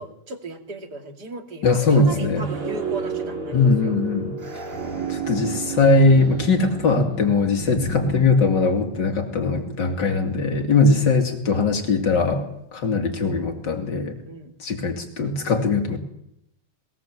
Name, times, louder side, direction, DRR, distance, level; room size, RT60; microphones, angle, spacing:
voice 1, 0.0-4.0 10.0-10.3 11.0-11.1 14.2-14.5, right 3 dB, 50° right, 5 dB, 2.8 m, -36 dB
voice 2, 1.6-2.5 3.5-4.4 5.1-14.1 14.6-16.0, left 3 dB, 55° left, 5 dB, 3.1 m, -20 dB
sound 1, 1.8-8.2, right 4 dB, 80° right, 4.6 m, -31 dB
21.0 x 18.5 x 7.7 m, 0.81 s
omnidirectional pair, 2.4 m